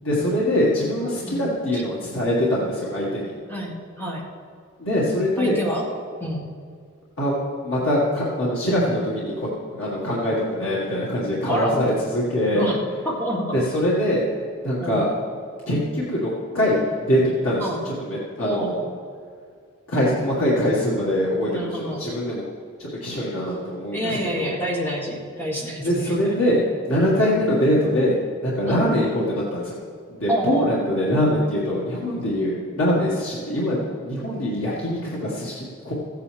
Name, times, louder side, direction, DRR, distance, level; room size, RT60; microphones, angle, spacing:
voice 1, 0.0-3.3 4.8-5.6 7.2-12.7 13.5-14.3 14.6-15.1 15.7-18.8 19.9-22.4 22.8-24.6 25.8-29.7 30.2-33.8 34.0-35.9, equal, 80° left, -7 dB, 2.0 m, -23 dB
voice 2, 3.5-4.2 5.4-5.9 6.2-6.5 11.5-11.8 12.5-13.6 14.8-15.1 17.6-17.8 18.4-18.9 21.5-22.1 23.9-26.4 27.2-27.4 28.7-28.9 30.3-30.7, equal, 10° left, -3 dB, 1.7 m, -28 dB
15.0 x 9.1 x 3.5 m, 2.1 s
head